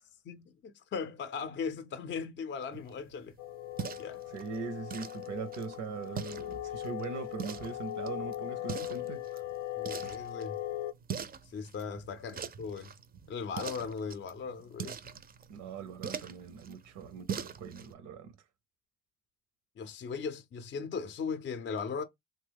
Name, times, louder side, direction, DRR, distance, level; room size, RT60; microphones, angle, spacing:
voice 1, 0.2-3.4 4.0-4.2 9.8-10.6 11.4-12.9 13.3-15.1 19.8-22.0, left 5 dB, 40° left, 0.5 m, -38 dB
sound 1, 2.7-17.9, right 7 dB, 30° right, 0.4 m, -44 dB
sound 2, 3.4-10.9, left 13 dB, 90° left, 0.5 m, -39 dB
voice 2, 4.3-9.4 15.5-18.3, right 5 dB, 80° right, 0.6 m, -41 dB
3.0 x 2.2 x 3.3 m
cardioid pair, 90°, 30 cm